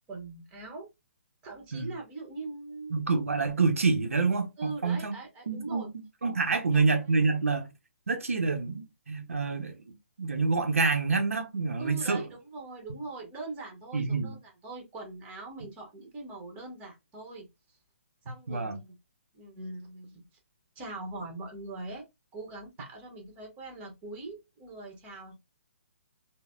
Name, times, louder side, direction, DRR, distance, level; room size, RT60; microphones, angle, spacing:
voice 1, 0.1-0.9 1.4-2.9 4.6-5.9 6.5-6.8 11.8-17.8 18.2-18.9 19.3-20.2 20.7-22.0 22.3-25.4, right 3 dB, 20° right, 1.1 m, -42 dB
voice 2, 2.9-5.1 5.5-5.9 6.2-7.7 8.1-9.8 10.2-12.2 13.9-14.3 18.5-18.8, right 4 dB, 80° right, 0.6 m, -27 dB
3.9 x 2.0 x 2.3 m
figure-of-eight pair, 140°, 7 cm